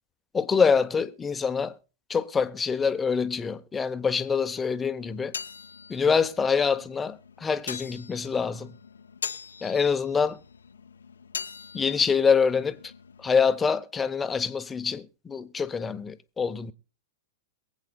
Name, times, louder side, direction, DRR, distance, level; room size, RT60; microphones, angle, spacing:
voice 1, 0.3-1.8 2.1-5.3 5.9-8.7 9.6-10.4 11.7-12.8 13.2-16.7, left 6 dB, 15° left, 0.8 m, -25 dB
sound 1, 5.0-13.5, left 6 dB, 90° left, 0.7 m, -42 dB
22.5 x 8.1 x 2.2 m
hypercardioid pair, 120°, 0 cm